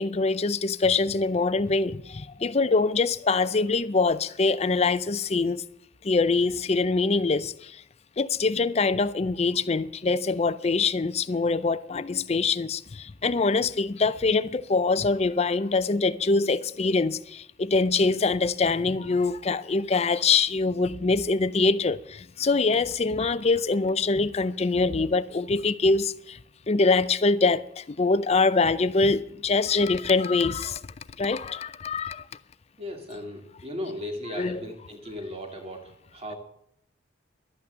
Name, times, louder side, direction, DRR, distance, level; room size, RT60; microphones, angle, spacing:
voice 1, 0.0-5.6 6.0-7.8 8.2-26.4 26.7-30.8 31.2-32.2 34.4-34.6, left 3 dB, 35° left, 0.5 m, -24 dB
voice 2, 32.8-36.4, left 1 dB, 35° right, 2.2 m, -37 dB
12.0 x 8.6 x 7.9 m
head